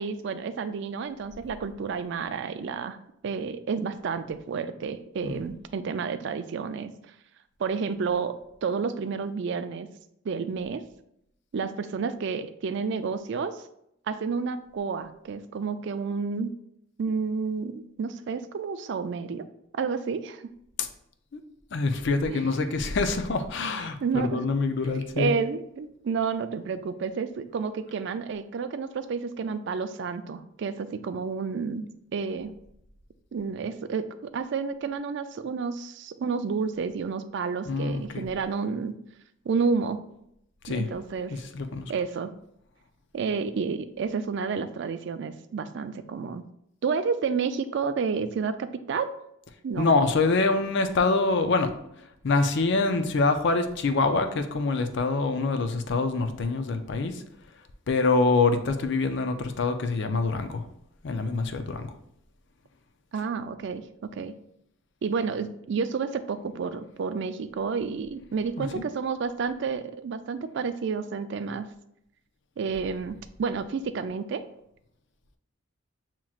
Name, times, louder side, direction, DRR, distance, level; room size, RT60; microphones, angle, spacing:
voice 1, 0.0-3.0 3.2-6.9 7.6-9.9 10.2-10.8 11.5-13.6 14.1-16.5 17.0-19.5 19.7-20.5 22.3-22.4 24.0-24.4 25.2-32.5 33.3-39.0 39.5-40.1 40.7-41.3 41.9-42.3 43.1-46.4 46.8-49.1 49.6-49.9 63.1-64.3 65.0-71.7 72.6-74.4, right 5 dB, 60° right, 11 dB, 0.3 m, -30 dB
voice 2, 21.7-25.3 37.7-38.2 40.6-40.9 41.3-41.9 49.8-51.7 52.2-57.2 57.9-60.6 61.0-61.9 68.6-68.8, left 3 dB, 60° left, 7 dB, 0.5 m, -25 dB
7.2 x 3.0 x 2.4 m, 0.77 s
head